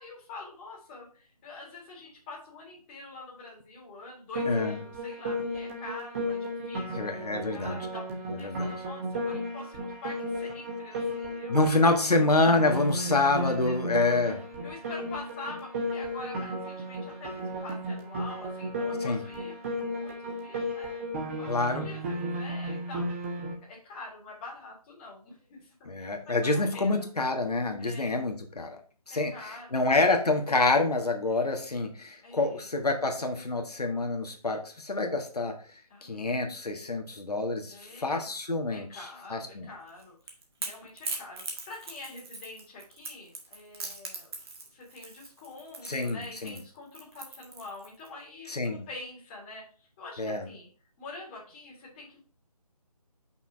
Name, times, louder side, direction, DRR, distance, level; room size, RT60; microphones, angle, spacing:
voice 1, 0.0-8.1 8.4-12.2 13.0-13.3 13.6-14.3 14.6-21.1 21.4-23.1 23.6-25.9 26.3-27.1 27.8-28.2 29.1-30.1 32.2-32.7 35.9-36.4 37.7-38.3 38.7-40.2 40.6-44.3 44.7-50.7 51.0-52.2, left 3 dB, 15° left, -3 dB, 1.9 m, -46 dB
Piano, 4.3-23.5, equal, 20° right, 1.3 m, -34 dB
voice 2, 6.9-7.9 8.4-8.7 11.5-14.4 19.0-19.2 21.5-21.9 25.8-28.8 29.1-35.5 36.0-38.9 39.3-39.7 45.8-46.6 48.5-48.9 50.2-50.4, left 2 dB, 75° left, 4 dB, 1.5 m, -27 dB
Crackle / Crack, 39.9-48.1, right 3 dB, 40° right, 1.7 m, -40 dB
5.8 x 4.3 x 5.5 m, 0.41 s
figure-of-eight pair, 160°, 20 cm